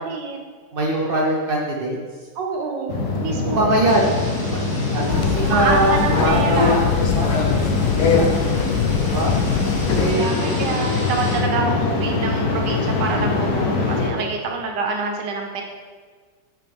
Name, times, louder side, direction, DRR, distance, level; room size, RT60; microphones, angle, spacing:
voice 1, 0.1-0.4 2.3-3.8 5.0-6.8 10.0-15.6, right 4 dB, 70° right, 2 dB, 1.5 m, -27 dB
voice 2, 0.7-2.0 3.4-4.1 4.9-6.7 7.1-8.4 9.0-9.4 9.9-10.6 14.0-14.1, right 1 dB, 90° right, -2 dB, 0.4 m, -22 dB
sound 1, 2.9-14.1, left 3 dB, 60° left, 1.3 m, -23 dB
sound 2, 3.8-11.4, left 1 dB, 15° left, 0.7 m, -36 dB
sound 3, 5.1-10.1, left 6 dB, 75° left, 1.3 m, -23 dB
7.7 x 5.0 x 3.5 m, 1.5 s
omnidirectional pair, 2.1 m